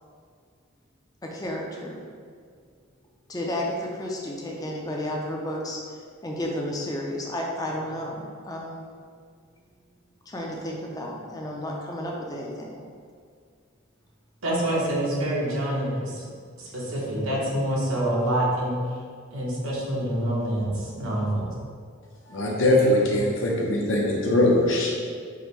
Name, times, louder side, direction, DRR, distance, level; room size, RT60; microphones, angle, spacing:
voice 1, 1.2-2.0 3.3-8.8 10.3-12.8, left 1 dB, 20° left, -1 dB, 0.4 m, -32 dB
voice 2, 14.4-16.3 16.6-18.8 19.3-21.5, right 1 dB, 80° right, -4 dB, 1.0 m, -26 dB
voice 3, 22.3-25.2, left 1 dB, 65° left, -3 dB, 0.8 m, -22 dB
4.8 x 2.6 x 3.2 m, 2.1 s
head